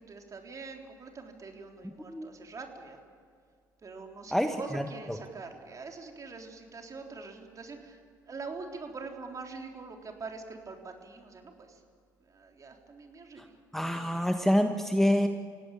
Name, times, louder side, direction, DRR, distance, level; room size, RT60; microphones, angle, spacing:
voice 1, 0.0-3.0 3.8-11.8 12.2-13.5 13.9-14.3, right 4 dB, 35° right, 3 dB, 3.7 m, -44 dB
voice 2, 4.3-4.8 5.1-5.2 13.7-15.3, equal, 5° left, 6 dB, 1.5 m, -26 dB
28.0 x 17.0 x 8.7 m, 2.1 s
hypercardioid pair, 55°, 10 cm